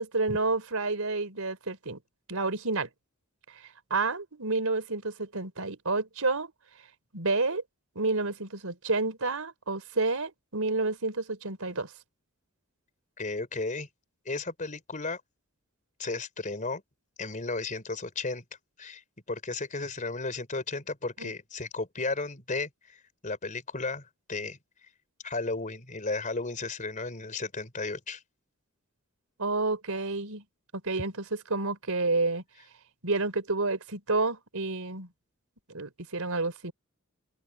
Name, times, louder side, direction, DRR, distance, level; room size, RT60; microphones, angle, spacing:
voice 1, 0.0-2.0 2.3-2.9 3.9-6.5 7.1-7.6 8.0-11.9 21.2-21.3 29.4-30.4 30.8-31.2 31.5-32.4 33.0-35.1 35.7-36.7, right 3 dB, 80° right, 3.8 m, -29 dB
voice 2, 13.2-13.9 14.3-15.2 16.0-16.8 17.2-18.4 18.8-19.0 19.3-24.6 25.2-28.2, left 3 dB, 35° left, 4.3 m, -34 dB
head